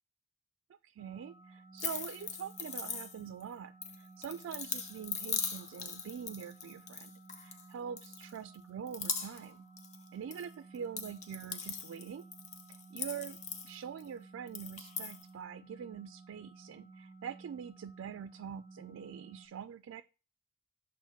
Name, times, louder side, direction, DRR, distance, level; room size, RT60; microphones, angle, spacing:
voice 1, 0.8-9.7 10.1-12.2 12.7-13.4 13.6-20.0, right 8 dB, 85° right, 11 dB, 0.3 m, -44 dB
sound 1, 1.0-19.5, right 3 dB, 15° right, 0.5 m, -55 dB
sound 2, 1.8-3.4 3.8-7.6 8.0-8.6 8.9-9.5 9.8-10.4 10.7-14.1 14.5-15.2, left 6 dB, 35° left, 0.7 m, -40 dB
7.2 x 2.5 x 5.6 m, 0.34 s
head